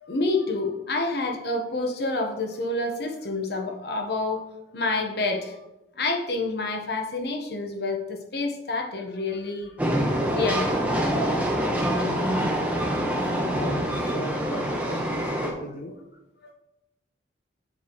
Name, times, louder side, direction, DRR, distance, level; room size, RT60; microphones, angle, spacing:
voice 1, 0.0-4.4 4.7-5.6 6.0-9.7 10.1-10.8 12.0-12.1 16.4-16.5, left 2 dB, 60° left, 3 dB, 1.1 m, -28 dB
Train, 9.8-15.5, right 1 dB, 10° right, 1.2 m, -25 dB
voice 2, 12.6-15.9, left 1 dB, 45° left, 1 dB, 0.7 m, -38 dB
7.2 x 7.2 x 3.1 m, 0.95 s
head